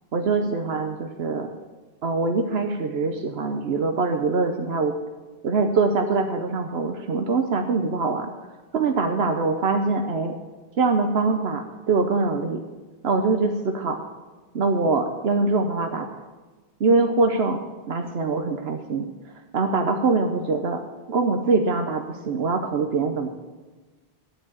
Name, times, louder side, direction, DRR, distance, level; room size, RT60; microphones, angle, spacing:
voice 1, 0.1-1.5 2.0-4.9 5.4-8.3 8.7-10.3 10.8-12.6 13.0-14.0 14.5-16.2 16.8-17.6 17.9-19.1 19.5-20.8 21.1-23.3, right 3 dB, 80° right, 5 dB, 1.1 m, -23 dB
13.5 x 4.7 x 8.5 m, 1.3 s
omnidirectional pair, 1.0 m